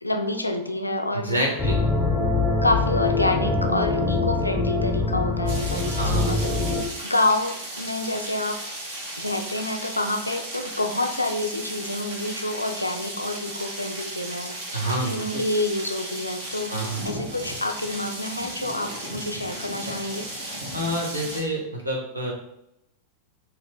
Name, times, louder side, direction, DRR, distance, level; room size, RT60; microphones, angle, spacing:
voice 1, 0.0-1.5 2.6-6.6 7.0-8.6 9.2-14.6 15.0-20.3, left 2 dB, 85° left, 5 dB, 0.4 m, -28 dB
voice 2, 1.1-1.8 6.0-6.4 14.7-15.2 16.7-17.0 20.7-22.3, right 1 dB, 85° right, -1 dB, 1.0 m, -27 dB
sound 1, 1.6-6.8, left 3 dB, 15° left, 0.6 m, -24 dB
sound 2, 5.5-21.4, right 1 dB, 65° right, 1.4 m, -35 dB
4.4 x 2.6 x 3.6 m, 0.81 s
figure-of-eight pair, 90°, 0 cm